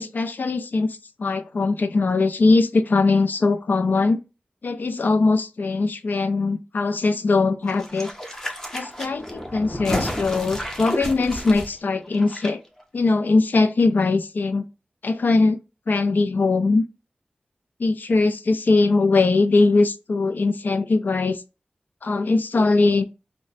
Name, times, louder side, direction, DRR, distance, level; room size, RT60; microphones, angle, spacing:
voice 1, 0.0-4.2 4.6-8.1 8.7-12.6 12.9-14.6 15.0-15.6 15.9-16.8 17.8-21.4 22.0-23.0, left 3 dB, 70° left, 0.3 m, -21 dB
sound 1, 7.7-12.5 12.8-12.9, equal, 15° left, 0.7 m, -31 dB
3.0 x 2.1 x 4.0 m
wide cardioid pair, 75°, 3 cm